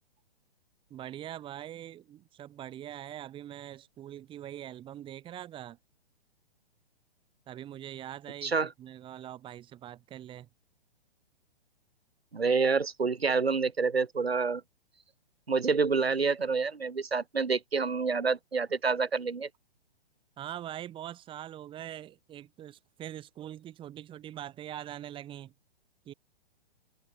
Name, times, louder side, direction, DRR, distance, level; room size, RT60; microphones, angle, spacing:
voice 1, 0.9-5.8 7.5-10.5 20.4-25.5 26.1-26.2, right 12 dB, 15° right, 2.2 m, -43 dB
voice 2, 12.3-14.6 15.5-19.5, right 4 dB, 80° right, 1.2 m, -28 dB
figure-of-eight pair, 120°, 30 cm